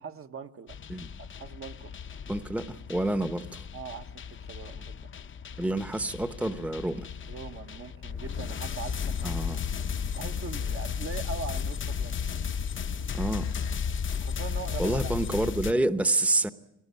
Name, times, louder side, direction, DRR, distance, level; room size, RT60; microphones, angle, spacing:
voice 1, 0.0-0.8 1.2-2.3 3.7-5.1 7.3-9.3 10.1-12.2 14.2-15.1, right 5 dB, 45° right, 1.1 m, -41 dB
sound 1, 0.7-15.7, left 7 dB, 40° left, 0.7 m, -34 dB
voice 2, 2.3-3.6 5.6-7.1 9.2-9.6 13.1-13.5 14.8-16.5, right 2 dB, 5° right, 0.9 m, -28 dB
21.5 x 18.5 x 9.5 m
cardioid pair, 90°, 30 cm